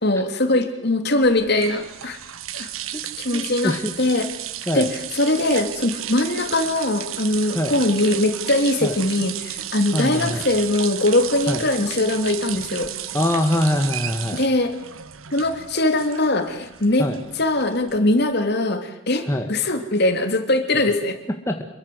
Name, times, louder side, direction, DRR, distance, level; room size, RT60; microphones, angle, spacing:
voice 1, 0.0-2.2 2.5-2.7 3.2-4.3 4.7-12.9 14.3-14.7 15.3-21.2, left 2 dB, 55° left, 7 dB, 3.1 m, -21 dB
sound 1, 1.2-18.3, right 11 dB, 90° right, 1.3 m, -33 dB
voice 2, 3.3-4.0 4.7-4.9 7.5-7.7 8.8-9.0 9.9-10.4 11.5-11.6 13.1-14.4 17.0-17.2 19.3-19.5 21.5-21.6, left 1 dB, 15° left, 4 dB, 1.7 m, -23 dB
27.5 x 22.5 x 8.0 m, 0.81 s
head